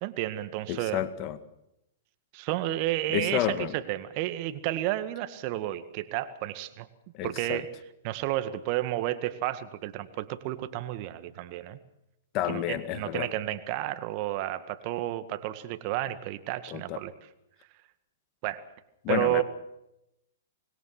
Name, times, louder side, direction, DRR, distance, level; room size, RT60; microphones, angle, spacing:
voice 1, 0.0-1.0 2.3-6.9 7.2-7.7 8.0-11.8 12.5-17.1 18.4-18.6 19.1-19.4, right 15 dB, 45° right, 2.0 m, -31 dB
voice 2, 0.7-1.4 3.1-3.7 7.1-7.6 12.3-13.3 16.7-17.0 19.0-19.4, left 12 dB, 35° left, 2.0 m, -30 dB
25.5 x 20.5 x 6.1 m
hypercardioid pair, 115°, 0 cm